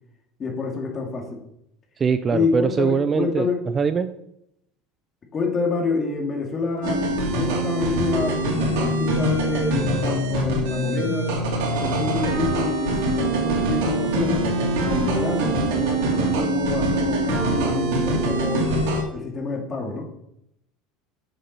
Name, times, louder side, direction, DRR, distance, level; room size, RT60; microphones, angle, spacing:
voice 1, 0.4-1.4 2.3-3.6 5.3-11.3 11.7-14.4 14.8-20.1, left 4 dB, 25° left, 1 dB, 2.1 m, -27 dB
voice 2, 2.0-3.5 3.7-4.1, right 5 dB, 20° right, 11 dB, 0.4 m, -22 dB
sound 1, 6.8-19.0, right 2 dB, 80° right, 2.8 m, -23 dB
7.3 x 7.1 x 5.3 m, 0.78 s
supercardioid pair, 145°, 0 cm